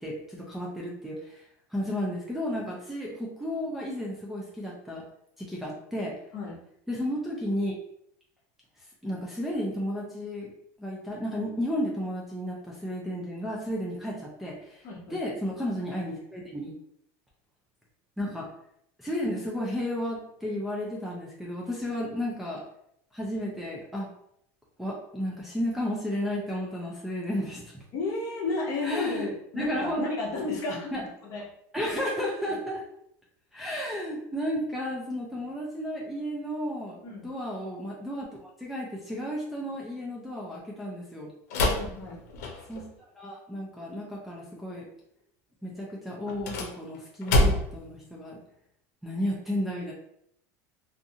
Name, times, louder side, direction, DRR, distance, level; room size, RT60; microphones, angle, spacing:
voice 1, 0.0-1.4 1.7-5.0 5.4-6.2 6.9-7.8 9.0-10.5 10.8-16.7 18.2-18.5 19.0-22.6 23.1-24.1 24.8-27.8 28.8-29.2 29.5-30.0 30.9-31.1 31.7-32.8 33.5-41.3 42.7-42.9 43.2-44.9 45.6-48.4 49.0-49.9, equal, 5° right, -5 dB, 0.4 m, -33 dB
voice 2, 14.8-15.2 27.9-30.9 31.2-31.5 37.0-37.3 41.5-42.2, left 3 dB, 40° left, -2 dB, 0.8 m, -32 dB
sound 1, 41.5-42.9 46.2-47.9, left 1 dB, 85° left, 0.6 m, -26 dB
2.5 x 2.4 x 2.7 m, 0.73 s
supercardioid pair, 150°, 8 cm